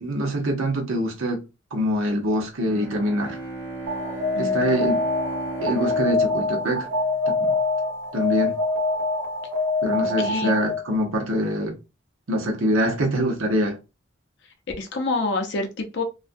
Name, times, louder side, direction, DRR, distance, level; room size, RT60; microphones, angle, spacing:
voice 1, 0.0-1.4 1.7-3.4 4.4-5.0 5.6-6.9 7.3-7.6 8.1-8.6 9.8-11.8 12.3-13.8, equal, 90° right, 0.8 m, -24 dB
Bowed string instrument, 2.7-7.9, right 3 dB, 10° right, 0.8 m, -36 dB
Alarm, 3.9-10.9, left 3 dB, 65° right, 1.0 m, -25 dB
voice 2, 4.4-4.9 10.2-10.5 14.8-16.0, left 3 dB, 60° left, 0.5 m, -27 dB
2.4 x 2.2 x 2.6 m
head